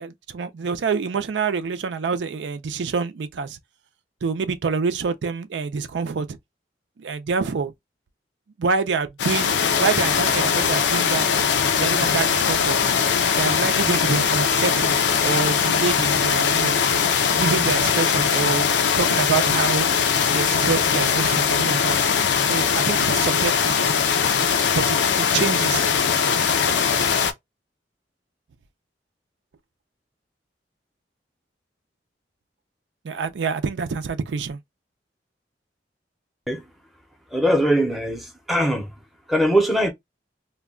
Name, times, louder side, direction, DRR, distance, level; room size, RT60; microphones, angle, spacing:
voice 1, 0.0-3.6 4.2-6.4 7.0-7.7 8.6-11.5 11.8-12.8 13.4-15.0 15.2-16.8 17.3-19.9 20.3-22.0 22.4-23.8 24.8-25.9 33.0-34.6, right 5 dB, 85° right, 0.4 m, -26 dB
sound 1, 9.2-27.3, left 6 dB, 80° left, 0.5 m, -21 dB
voice 2, 37.3-38.9 39.3-39.9, equal, ahead, 0.6 m, -21 dB
2.2 x 2.2 x 3.5 m
head